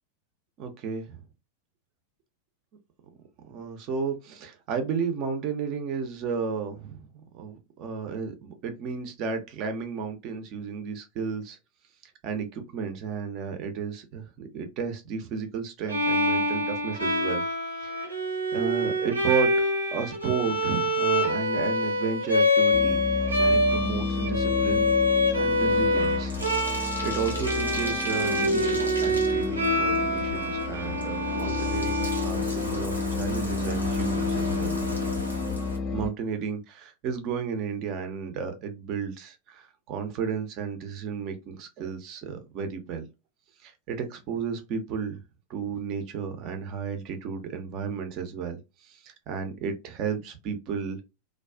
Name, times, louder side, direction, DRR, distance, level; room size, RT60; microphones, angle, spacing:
voice 1, 0.6-1.2 3.5-11.6 12.2-17.4 17.8-18.1 18.5-19.5 19.9-23.0 23.3-24.9 25.4-26.4 26.7-34.8 35.9-43.0 43.6-45.2 45.5-48.6 48.9-51.0, right 6 dB, 40° right, 0.6 m, -33 dB
Bowed string instrument, 15.9-32.8, left 1 dB, 80° right, 0.7 m, -26 dB
sound 1, 22.7-36.1, left 4 dB, 30° left, 0.4 m, -31 dB
Bathtub (filling or washing), 24.4-35.8, left 1 dB, 90° left, 0.8 m, -37 dB
2.3 x 2.3 x 2.3 m
figure-of-eight pair, 90°, 0 cm